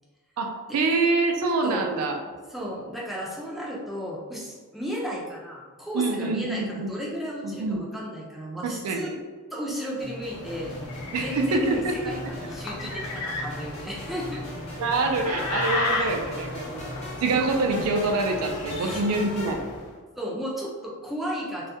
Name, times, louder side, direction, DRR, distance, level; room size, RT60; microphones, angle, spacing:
voice 1, 0.4-2.2 5.9-6.9 7.4-7.9 8.6-9.2 11.1-12.1 12.4-12.5 14.8-19.6, right 3 dB, 85° right, 3 dB, 0.4 m, -26 dB
voice 2, 2.5-9.1 9.5-10.8 11.2-14.4 16.7-16.8 18.7-19.0 20.2-21.7, equal, ahead, -4 dB, 0.4 m, -34 dB
sound 1, 9.7-19.5, left 1 dB, 30° left, 0.7 m, -44 dB
sound 2, 10.0-17.6, left 1 dB, 65° right, 0.7 m, -42 dB
sound 3, 10.1-19.9, left 2 dB, 80° left, 0.5 m, -34 dB
2.4 x 2.1 x 2.7 m, 1.4 s
head